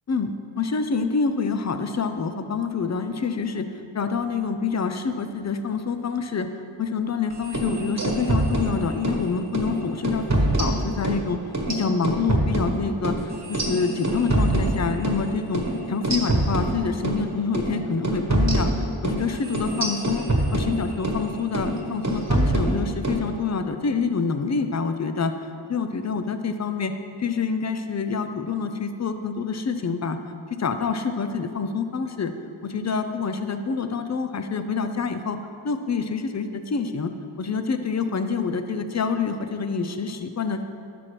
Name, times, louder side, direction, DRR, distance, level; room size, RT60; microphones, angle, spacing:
voice 1, 0.1-3.7 3.9-6.5 6.8-11.4 11.7-25.3 25.7-26.9 27.2-30.2 30.5-32.3 32.6-35.4 35.6-37.1 37.4-40.6, left 5 dB, 35° left, 8 dB, 0.5 m, -27 dB
sound 1, 7.4-9.2 9.5-9.7 10.0-11.2 11.5-15.2 15.5-15.7 16.0-17.2 17.5-17.7 18.0-21.2 21.5-21.8 22.0-23.2, right 1 dB, 35° right, 1.3 m, -24 dB
11.0 x 6.0 x 3.3 m, 2.5 s
wide cardioid pair, 50°, 50 cm